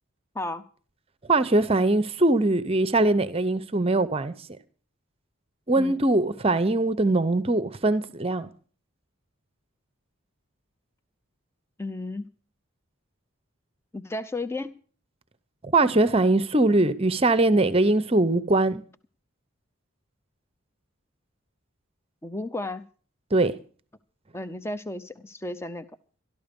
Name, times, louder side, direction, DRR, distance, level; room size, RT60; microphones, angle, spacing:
voice 1, 1.3-4.3 5.7-8.5 15.6-18.8 23.3-23.6, right 2 dB, 30° right, 0.7 m, -22 dB
voice 2, 11.8-12.2 13.9-14.8 22.2-22.8 24.3-25.8, left 2 dB, 10° left, 0.6 m, -33 dB
13.5 x 12.5 x 5.2 m
head